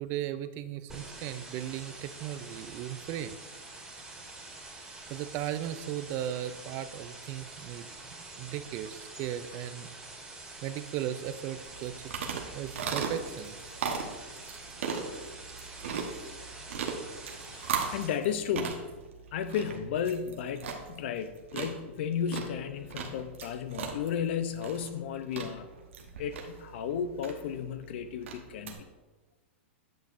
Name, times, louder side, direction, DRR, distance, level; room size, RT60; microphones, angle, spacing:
voice 1, 0.0-3.4 5.1-7.9 8.4-9.9 10.6-13.6, right 11 dB, 35° right, 12 dB, 0.3 m, -37 dB
sound 1, 0.9-18.1, right 2 dB, 10° right, 1.8 m, -46 dB
sound 2, 11.7-28.8, right 6 dB, 75° right, 1.1 m, -38 dB
voice 2, 17.5-18.9 19.3-25.7 26.2-28.8, left 8 dB, 60° left, 10 dB, 0.6 m, -34 dB
8.6 x 5.8 x 2.6 m, 1.2 s
hypercardioid pair, 135°, 7 cm